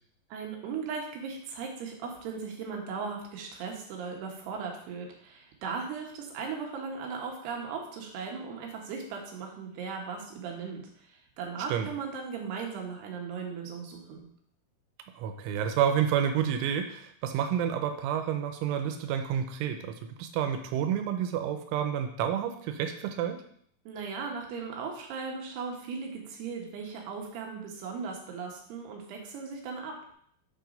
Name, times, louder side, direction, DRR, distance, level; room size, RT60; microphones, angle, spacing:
voice 1, 0.3-14.2 23.9-30.1, right 5 dB, 70° right, 0 dB, 3.1 m, -37 dB
voice 2, 15.2-23.4, right 9 dB, 90° right, 6 dB, 3.2 m, -29 dB
7.9 x 4.7 x 5.2 m, 0.64 s
omnidirectional pair, 5.4 m